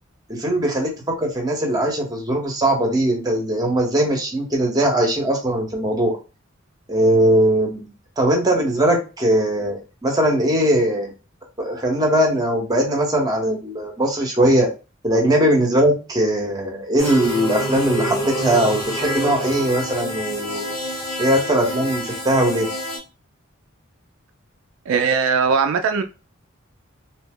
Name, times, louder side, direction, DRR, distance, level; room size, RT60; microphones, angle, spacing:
voice 1, 0.3-6.1 6.9-7.9 8.2-11.1 11.6-14.7 15.0-20.7 21.2-22.7, right 1 dB, 20° right, 0 dB, 0.8 m, -20 dB
sound 1, 17.0-23.0, equal, 80° left, 1.7 m, -27 dB
voice 2, 24.9-26.0, right 5 dB, 75° right, 8 dB, 0.3 m, -19 dB
2.7 x 2.0 x 3.5 m, 0.31 s
head